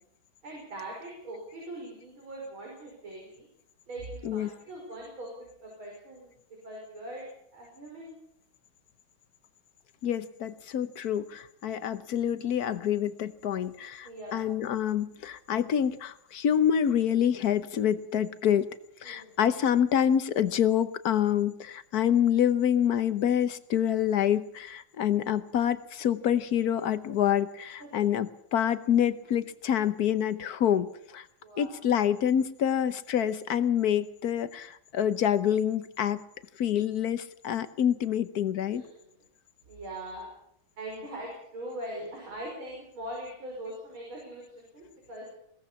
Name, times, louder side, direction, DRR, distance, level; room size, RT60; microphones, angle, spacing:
voice 1, 0.4-3.4 3.9-6.3 6.6-7.3 7.5-8.1 14.0-14.5 19.0-19.4 27.8-28.0 31.4-31.8 38.7-39.2 39.7-40.3 40.8-45.3, right 1 dB, 80° right, -2 dB, 6.4 m, -41 dB
voice 2, 10.0-18.7 19.0-31.3 31.6-36.2 36.6-38.8, left 9 dB, 55° left, 13 dB, 1.3 m, -27 dB
22.0 x 17.0 x 7.1 m, 0.71 s
omnidirectional pair, 2.2 m